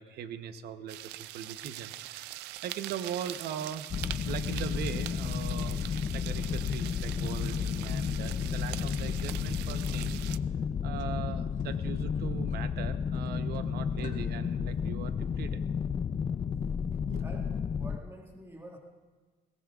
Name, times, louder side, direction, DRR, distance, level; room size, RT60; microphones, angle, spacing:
voice 1, 0.0-2.4 2.6-3.9 4.3-5.8 6.1-10.3 10.8-15.6 17.1-17.4, right 8 dB, 70° right, 10 dB, 0.9 m, -40 dB
sound 1, 0.9-10.4, right 16 dB, 85° right, 0.4 m, -43 dB
sound 2, 3.9-18.0, left 7 dB, 30° left, 0.4 m, -32 dB
sound 3, 8.4-15.1, left 5 dB, 45° left, 1.6 m, -53 dB
voice 2, 17.2-18.8, right 1 dB, 15° right, 0 dB, 2.0 m, -47 dB
22.0 x 17.5 x 2.4 m, 1.4 s
cardioid pair, 110°, 17 cm